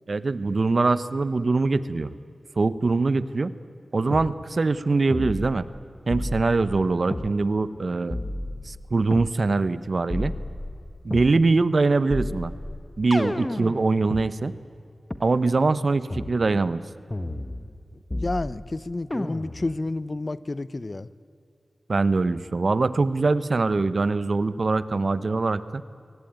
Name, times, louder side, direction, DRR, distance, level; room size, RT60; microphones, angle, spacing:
voice 1, 0.1-2.1 2.6-3.5 3.9-5.7 6.1-8.2 8.7-10.3 11.0-12.5 13.0-14.5 15.2-16.8 21.9-25.8, right 3 dB, 55° right, 15 dB, 0.8 m, -23 dB
sound 1, 4.1-4.3 5.1-5.8 6.1-7.3 8.1-9.3 10.1-11.3 12.1-14.3 15.1-15.2 16.1-16.3 17.1-17.8 18.1-18.7 19.1-19.7, left 1 dB, 25° left, 1.2 m, -32 dB
voice 2, 18.1-21.1, left 2 dB, 40° left, 17 dB, 0.7 m, -30 dB
23.0 x 17.5 x 9.3 m, 2.4 s
cardioid pair, 55°, 0 cm